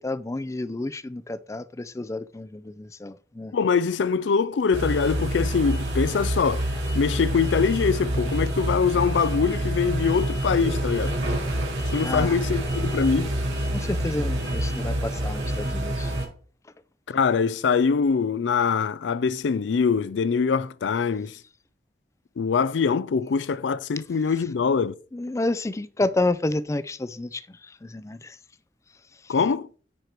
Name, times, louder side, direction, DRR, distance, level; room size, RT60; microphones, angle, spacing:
voice 1, 0.0-3.5 12.0-12.3 13.7-16.1 25.1-28.4 29.2-29.3, left 2 dB, 15° left, 0.4 m, -30 dB
voice 2, 3.5-6.7 6.9-11.2 11.9-13.3 17.1-21.4 22.4-24.9 29.3-29.7, left 5 dB, 85° left, 0.4 m, -23 dB
sound 1, 4.7-16.3, right 1 dB, 85° right, 4.6 m, -27 dB
9.8 x 4.7 x 4.5 m
head